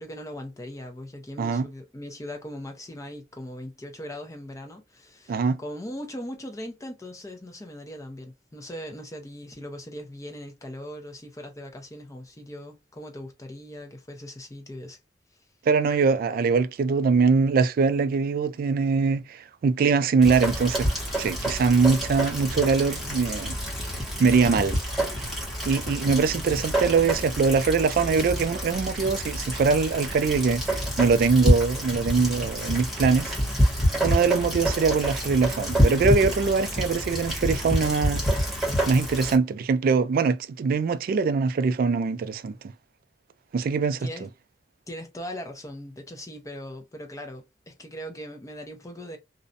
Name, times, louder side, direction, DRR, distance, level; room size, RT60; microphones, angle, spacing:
voice 1, 0.0-15.0 44.0-44.3 44.9-49.2, equal, 20° left, 0.5 m, -39 dB
voice 2, 5.3-5.6 15.7-20.9 21.2-23.5 24.2-24.8 25.7-33.4 34.0-38.2 38.9-42.6 43.5-44.1, right 5 dB, 55° right, 0.3 m, -22 dB
Rain, 20.2-39.4, equal, ahead, 1.2 m, -27 dB
2.5 x 2.1 x 2.4 m
head